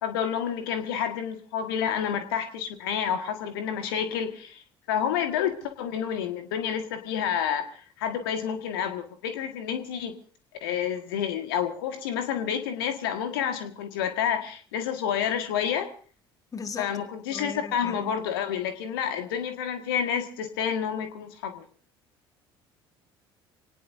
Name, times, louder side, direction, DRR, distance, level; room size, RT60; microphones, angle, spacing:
voice 1, 0.0-4.6 4.9-10.1 10.6-15.9 16.8-21.6, left 8 dB, 65° left, 7 dB, 1.6 m, -29 dB
voice 2, 16.5-17.0 17.3-18.1, left 4 dB, 25° left, 9 dB, 1.6 m, -38 dB
26.0 x 19.0 x 2.7 m, 0.42 s
figure-of-eight pair, 60°, 13 cm